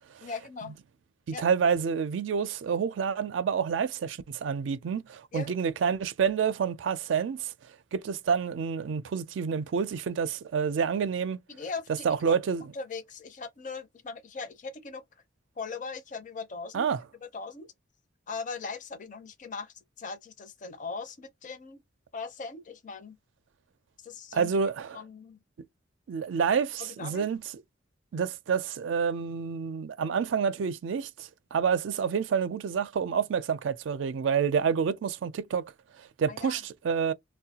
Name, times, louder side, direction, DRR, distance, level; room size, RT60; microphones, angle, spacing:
voice 1, 0.2-0.7 1.3-1.4 5.3-5.5 11.5-12.4 12.7-15.0 15.6-16.9 17.2-17.7 18.3-21.8 22.1-23.2 24.0-24.5 24.9-25.4 26.8-27.3 36.3-36.6, left 4 dB, 40° left, 0.5 m, -39 dB
voice 2, 1.3-7.5 7.9-11.4 12.0-12.7 16.7-17.0 24.3-25.0 26.1-27.4 28.1-37.1, right 6 dB, 80° right, 0.4 m, -28 dB
4.3 x 2.1 x 2.8 m
head